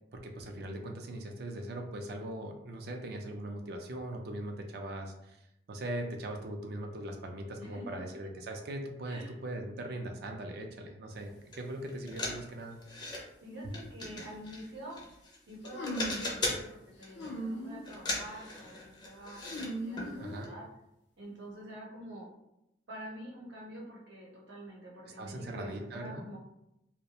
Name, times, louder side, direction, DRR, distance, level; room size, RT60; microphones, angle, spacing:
voice 1, 0.1-5.4 5.7-12.8 20.2-20.5 25.2-26.2, right 1 dB, 60° right, 3 dB, 0.4 m, -40 dB
voice 2, 7.6-8.0 9.0-9.4 13.4-15.0 15.5-20.6 21.2-22.3 22.9-26.4, right 1 dB, 85° right, -3 dB, 0.8 m, -47 dB
sound 1, 11.5-11.6 11.9-13.2 13.7-15.4 15.7-16.7 17.0-17.4 17.8-19.7 20.0-20.1 20.4-20.5, left 2 dB, 25° left, 0.4 m, -38 dB
sound 2, 15.7-16.3 17.1-17.8 18.2-18.6 19.4-20.6, equal, 75° left, 0.5 m, -39 dB
2.3 x 2.1 x 2.8 m, 0.84 s
head